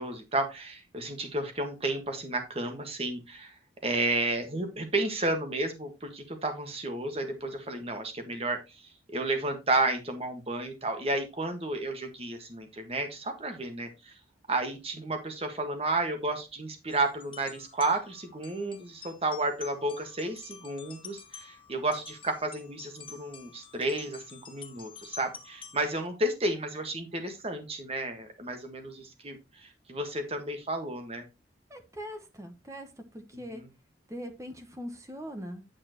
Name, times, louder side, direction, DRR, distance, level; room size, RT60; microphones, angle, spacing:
voice 1, 0.0-3.5 3.8-8.6 9.1-14.1 14.5-31.2 33.5-33.7, right 2 dB, 35° right, 6 dB, 1.6 m, -32 dB
sound 1, 16.9-26.1, left 7 dB, 30° left, 1.1 m, -49 dB
voice 2, 31.7-33.6 34.1-35.6, equal, 15° right, 7 dB, 1.2 m, -41 dB
9.1 x 7.4 x 3.0 m, 0.25 s
head